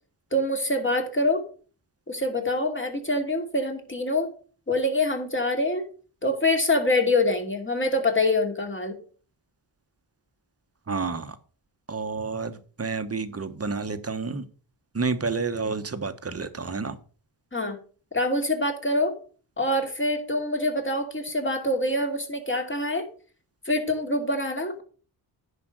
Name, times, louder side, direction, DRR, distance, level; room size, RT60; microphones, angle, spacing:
voice 1, 0.3-1.4 2.1-4.3 4.7-5.8 6.2-8.9 17.5-17.8 18.1-19.1 19.6-23.0 23.7-24.8, left 1 dB, 25° left, 2.7 m, -25 dB
voice 2, 10.9-11.4 11.9-14.5 14.9-17.0, right 4 dB, 30° right, 1.2 m, -30 dB
10.0 x 5.1 x 6.2 m
cardioid pair, 75°, 46 cm